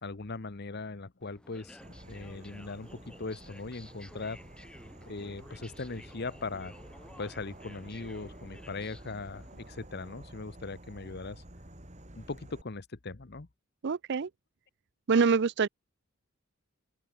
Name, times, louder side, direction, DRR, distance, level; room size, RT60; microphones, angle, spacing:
voice 1, 0.0-1.8 2.1-4.4 5.1-6.8 7.2-11.4 12.1-13.5, left 3 dB, 50° left, 1.0 m, -39 dB
sound 1, 1.2-9.9, left 1 dB, 5° left, 1.8 m, -54 dB
Insect / Frog, 1.8-12.6, right 1 dB, 35° right, 5.5 m, -51 dB
voice 2, 13.8-14.3 15.1-15.7, right 5 dB, 55° right, 0.5 m, -25 dB
open air
head